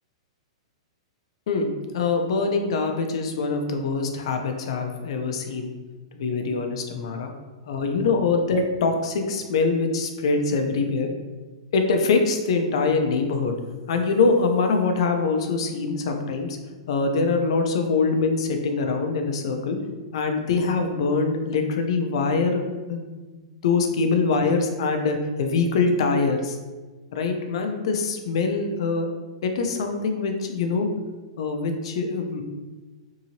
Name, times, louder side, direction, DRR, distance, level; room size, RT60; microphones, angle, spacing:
voice 1, 1.5-5.7 6.1-7.3 7.7-11.1 11.7-13.6 13.9-16.6 16.9-19.8 20.1-26.6 27.1-29.1 29.4-30.9 31.4-32.4, left 4 dB, 60° left, 5 dB, 0.4 m, -24 dB
2.8 x 2.7 x 2.7 m, 1.3 s
hypercardioid pair, 165°, 3 cm